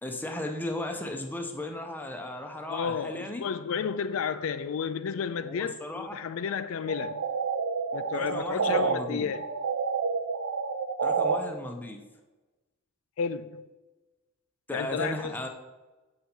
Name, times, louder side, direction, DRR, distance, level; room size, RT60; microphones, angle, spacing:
voice 1, 0.0-3.4 5.4-6.1 8.1-9.3 11.0-12.0 14.7-15.5, left 1 dB, 10° left, 0.7 m, -36 dB
voice 2, 2.7-7.2 7.9-9.4 13.2-13.6 14.7-15.3, left 6 dB, 75° left, 0.4 m, -32 dB
sound 1, 6.9-8.9 9.3-11.4, right 5 dB, 70° right, 0.6 m, -29 dB
7.7 x 5.4 x 4.4 m
head